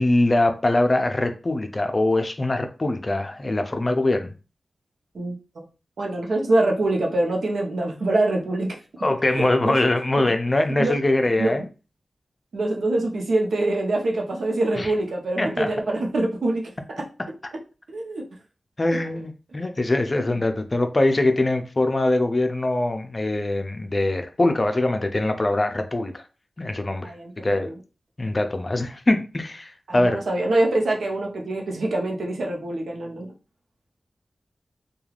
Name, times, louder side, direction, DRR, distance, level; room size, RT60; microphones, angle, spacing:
voice 1, 0.0-4.3 9.0-11.6 14.8-14.9 15.4-15.7 18.8-26.2 26.6-27.1 27.4-27.7 28.2-30.2, left 2 dB, 35° left, 0.4 m, -22 dB
voice 2, 5.1-5.6 6.0-8.8 9.3-9.8 10.8-11.0 11.4-11.6 12.5-17.0 17.9-18.2 20.3-20.4 27.0-27.7 29.9-33.3, right 2 dB, 90° right, 0.7 m, -24 dB
3.2 x 2.3 x 2.4 m
wide cardioid pair, 80°, 0 cm